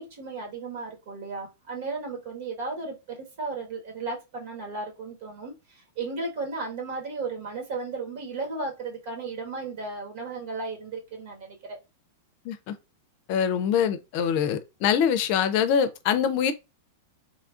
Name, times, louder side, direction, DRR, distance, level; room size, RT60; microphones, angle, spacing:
voice 1, 0.0-11.8, right 3 dB, 60° right, 1.5 m, -35 dB
voice 2, 12.4-12.7 13.3-16.5, left 8 dB, 50° left, 0.5 m, -24 dB
3.2 x 2.4 x 2.4 m
hypercardioid pair, 110°, 0 cm